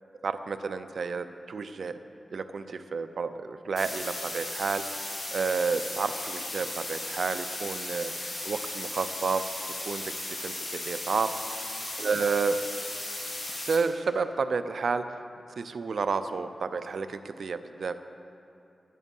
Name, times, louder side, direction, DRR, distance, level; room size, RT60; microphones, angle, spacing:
voice 1, 0.2-2.0 2.3-9.4 9.9-11.3 12.0-12.6 13.7-15.0 15.6-18.1, right 5 dB, 75° right, 10 dB, 0.6 m, -31 dB
sound 1, 3.8-13.8, left 2 dB, 65° left, 3.7 m, -36 dB
12.5 x 10.5 x 5.4 m, 2.7 s
wide cardioid pair, 75°, 0 cm